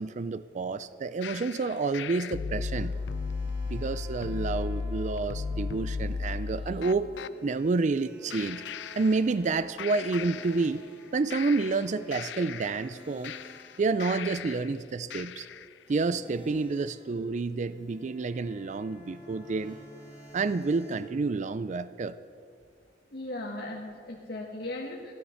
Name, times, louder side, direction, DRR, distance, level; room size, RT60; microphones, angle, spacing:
voice 1, 0.0-3.0 3.6-7.1 7.4-8.6 9.0-10.9 11.1-13.3 13.8-15.5 15.9-19.8 20.3-22.2, right 3 dB, 45° right, 15 dB, 0.4 m, -29 dB
sound 1, 1.1-1.8 2.6-14.2 15.9-21.0, equal, 5° right, 2.6 m, -53 dB
sound 2, 1.2-7.3 8.3-9.5 9.8-11.0 11.3-14.7 15.1-15.7, left 5 dB, 80° left, 0.4 m, -36 dB
voice 2, 23.1-25.1, left 2 dB, 65° left, -1 dB, 1.4 m, -37 dB
15.5 x 12.5 x 5.7 m, 2.3 s
head